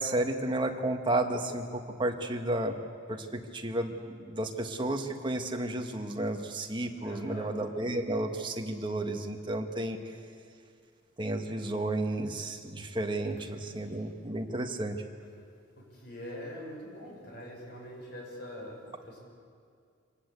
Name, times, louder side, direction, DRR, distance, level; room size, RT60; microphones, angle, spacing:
voice 1, 0.0-2.7 3.1-10.0 11.2-15.0, right 1 dB, 25° right, 4 dB, 1.6 m, -32 dB
voice 2, 7.0-7.5 15.9-19.2, equal, 55° left, -2 dB, 6.8 m, -43 dB
25.5 x 19.0 x 8.3 m, 2.2 s
head